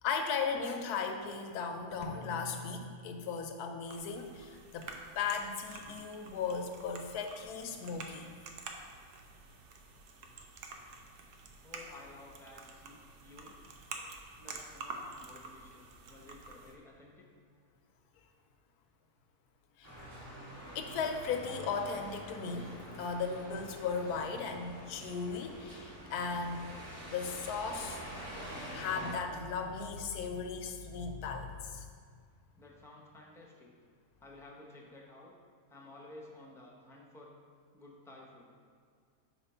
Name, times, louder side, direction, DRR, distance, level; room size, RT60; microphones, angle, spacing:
voice 1, 0.0-4.9 5.1-8.4 14.0-14.1 19.8-19.9 20.7-22.7 23.0-26.7 27.1-28.0 28.7-31.9, left 5 dB, 80° left, 5 dB, 1.1 m, -37 dB
sound 1, 2.0-3.9, left 2 dB, 55° left, 0.8 m, -47 dB
sound 2, 3.9-16.7, right 3 dB, 90° right, 1.2 m, -49 dB
voice 2, 11.6-13.6 14.4-17.3 32.6-33.7 34.2-35.4 35.7-37.3 37.7-38.5, left 2 dB, 5° left, -2 dB, 0.4 m, -53 dB
sound 3, 19.8-29.1, equal, 50° right, 2.2 m, -46 dB
5.1 x 4.8 x 5.5 m, 2.1 s
omnidirectional pair, 1.7 m